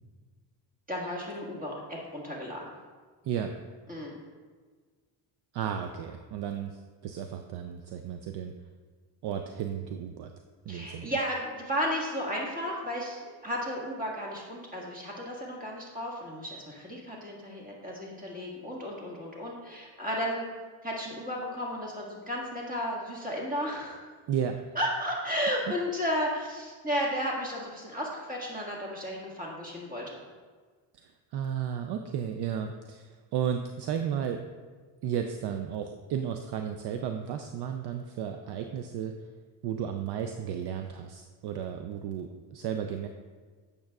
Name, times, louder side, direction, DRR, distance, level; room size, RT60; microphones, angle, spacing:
voice 1, 0.9-2.6 3.9-4.1 10.7-20.5 20.8-24.0 24.7-30.2, equal, 15° right, -3 dB, 1.8 m, -33 dB
voice 2, 3.2-3.6 5.5-8.5 9.2-10.3 10.7-11.1 24.3-24.6 30.9-34.4 35.0-39.2 39.6-43.1, right 8 dB, 55° right, 6 dB, 0.5 m, -33 dB
8.7 x 6.8 x 2.3 m, 1.5 s
cardioid pair, 110°, 47 cm